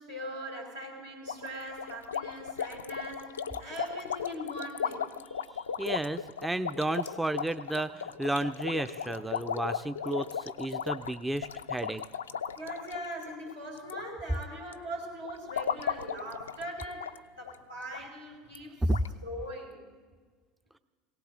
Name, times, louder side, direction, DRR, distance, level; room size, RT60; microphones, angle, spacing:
voice 1, 0.0-5.0 12.6-18.8 19.2-19.8, right 1 dB, 85° right, -3 dB, 3.7 m, -41 dB
sound 1, 1.3-14.0 14.3-14.7 15.2-17.2 17.4-17.6 17.9-18.0 18.6-18.7 18.9-19.1, left 7 dB, 80° left, 0.4 m, -36 dB
voice 2, 5.5-12.0 18.9-19.0, right 1 dB, 10° right, 11 dB, 0.5 m, -32 dB
19.0 x 17.5 x 3.8 m, 1.5 s
figure-of-eight pair, 70°, 0 cm